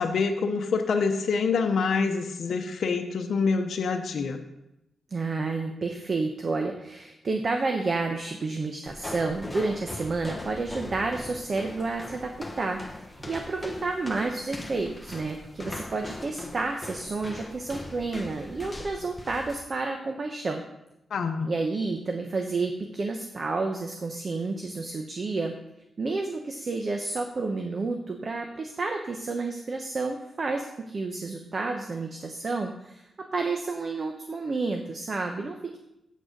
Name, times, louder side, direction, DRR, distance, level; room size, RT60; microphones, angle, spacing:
voice 1, 0.0-4.4 21.1-21.5, left 5 dB, 75° left, 4 dB, 0.7 m, -26 dB
voice 2, 5.1-20.6 21.4-25.6 26.0-35.8, right 3 dB, 45° right, 4 dB, 0.9 m, -30 dB
sound 1, 8.9-19.6, left 1 dB, 10° left, 1.1 m, -40 dB
8.4 x 6.2 x 5.2 m, 0.87 s
cardioid pair, 80°, 0 cm